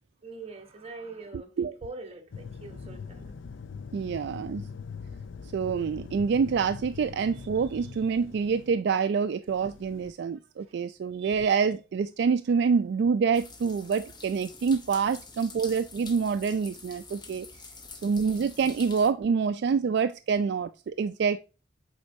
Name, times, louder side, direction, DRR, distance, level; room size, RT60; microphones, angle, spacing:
voice 1, 0.2-3.4 10.6-10.8 14.5-14.6 17.0-17.1 17.5-18.0 19.8-19.9, right 3 dB, 35° right, 1.0 m, -44 dB
sound 1, 2.3-8.7 9.5-10.1, left 5 dB, 90° left, 0.5 m, -42 dB
voice 2, 3.9-4.7 5.5-17.5 18.0-21.4, right 5 dB, 65° right, 0.3 m, -26 dB
sound 2, 13.3-19.1, left 4 dB, 25° left, 0.8 m, -47 dB
8.1 x 4.4 x 2.7 m
head